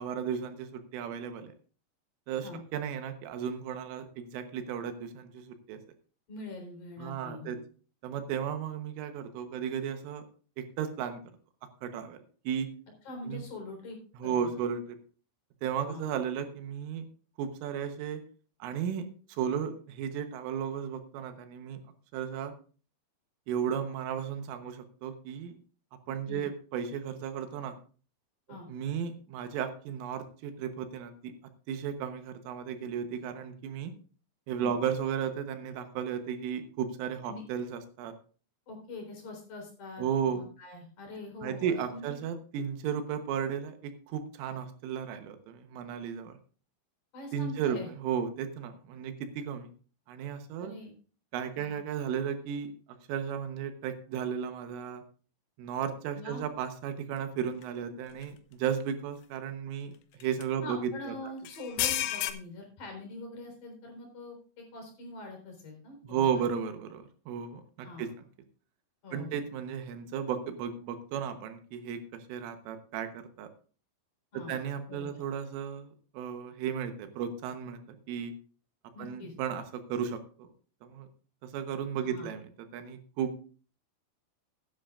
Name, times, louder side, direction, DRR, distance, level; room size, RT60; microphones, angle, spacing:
voice 1, 0.0-1.5 2.3-5.8 7.0-7.6 8.0-10.3 10.6-11.2 11.8-12.2 12.5-12.7 13.3-13.4 14.2-15.0 15.6-17.1 17.4-18.2 18.6-21.8 22.1-22.5 23.5-25.6 26.1-27.8 28.7-31.3 31.7-33.9 34.5-38.1 40.0-40.4 41.4-46.4 47.3-49.7 50.1-50.8 51.3-52.7 53.1-55.0 55.6-61.1 66.0-68.1 69.1-73.5 74.3-78.3 79.0-80.5 80.8-81.1 81.4-82.4 82.7-83.3, right 8 dB, 90° right, 7 dB, 3.7 m, -34 dB
voice 2, 6.3-7.6 13.0-14.3 14.7-14.8 15.8-16.1 26.2-26.5 28.5-28.7 34.6-34.7 37.3-37.4 38.7-42.1 47.1-47.9 50.6-50.9 51.5-51.8 56.1-56.4 60.6-66.2 67.8-68.1 69.0-69.5 74.3-75.1 78.9-79.3 82.0-82.3, left 2 dB, 45° left, 2 dB, 4.8 m, -44 dB
sound 1, 57.6-57.7 58.2-58.3 60.2-60.4 61.4-62.3, left 13 dB, 80° left, 3.1 m, -30 dB
16.0 x 10.5 x 2.5 m, 0.39 s
omnidirectional pair, 5.6 m